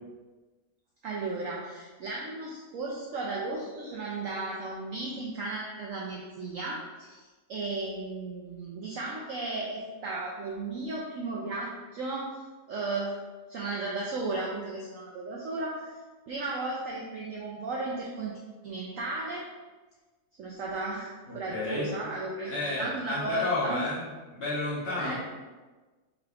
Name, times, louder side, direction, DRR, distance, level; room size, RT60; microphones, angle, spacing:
voice 1, 1.0-12.3 12.7-13.2 13.5-15.9 16.3-18.3 18.6-19.5 20.4-22.5 22.8-23.9 25.0-25.2, right 3 dB, 75° right, -3 dB, 0.7 m, -35 dB
voice 2, 21.3-21.9 22.4-25.2, left 2 dB, 40° left, -8 dB, 1.2 m, -31 dB
4.8 x 3.4 x 2.4 m, 1.3 s
omnidirectional pair, 1.9 m